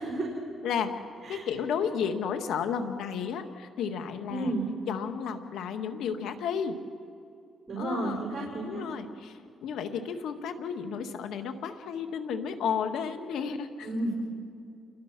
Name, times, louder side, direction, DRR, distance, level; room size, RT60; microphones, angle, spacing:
voice 1, 1.3-4.5 4.9-6.8 7.8-8.2 8.6-13.9, left 7 dB, 80° left, 7 dB, 1.8 m, -32 dB
voice 2, 4.3-4.7 7.7-8.8 13.8-14.1, right 2 dB, 40° right, -2 dB, 5.3 m, -32 dB
29.0 x 22.5 x 6.1 m, 2.5 s
cardioid pair, 90°, 0 cm